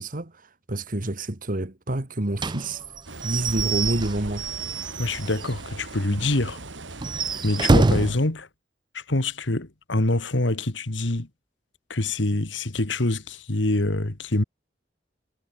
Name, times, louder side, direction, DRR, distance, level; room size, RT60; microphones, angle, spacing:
voice 1, 0.0-2.8 3.2-4.5, right 1 dB, 50° right, 1.8 m, -28 dB
Slam / Squeak / Wood, 2.4-5.6 5.9-6.0 6.3-6.4 6.9-8.2, right 3 dB, 25° right, 0.5 m, -25 dB
sound 1, 3.1-8.1, right 2 dB, 85° right, 3.6 m, -40 dB
voice 2, 5.0-6.6 7.4-8.5 8.9-11.3 11.9-14.4, left 2 dB, 80° left, 2.0 m, -25 dB
head